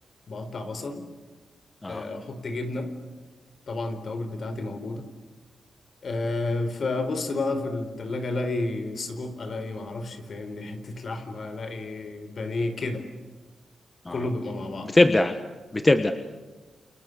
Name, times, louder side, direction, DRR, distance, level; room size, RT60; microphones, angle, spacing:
voice 1, 0.3-1.0 1.9-2.9 3.7-5.1 6.0-13.1 14.1-14.9, left 2 dB, 55° left, 9 dB, 4.3 m, -31 dB
voice 2, 14.8-15.4 15.7-16.1, left 2 dB, 20° left, 8 dB, 1.4 m, -21 dB
29.5 x 29.0 x 6.9 m, 1.3 s
cardioid pair, 105°, 0 cm